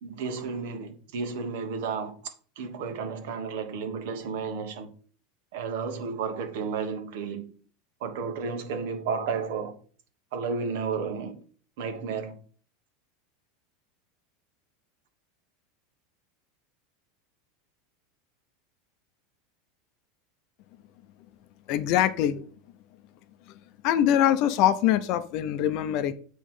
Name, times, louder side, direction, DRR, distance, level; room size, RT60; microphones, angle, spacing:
voice 1, 0.0-2.1 2.6-4.9 5.5-7.5 8.0-9.7 10.3-11.4 11.8-12.4, right 5 dB, 65° right, 1.2 m, -32 dB
voice 2, 21.7-22.4 23.8-26.1, left 11 dB, 45° left, 0.5 m, -23 dB
8.4 x 3.1 x 5.5 m
supercardioid pair, 160°, 0 cm